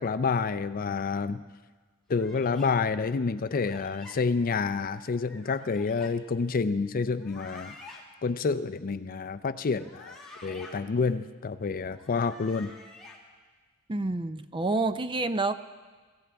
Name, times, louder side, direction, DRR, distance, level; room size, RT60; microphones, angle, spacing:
voice 1, 0.0-1.4 2.1-7.7 8.2-12.7, left 4 dB, 40° left, 12 dB, 0.5 m, -28 dB
sound 1, 2.1-2.7 3.6-4.2 5.3-6.1 7.1-8.0 9.7-10.7 11.9-13.2, left 2 dB, 5° left, 2.1 m, -49 dB
voice 2, 13.9-15.6, right 3 dB, 25° right, 11 dB, 0.5 m, -28 dB
25.0 x 15.0 x 3.5 m, 1.4 s
head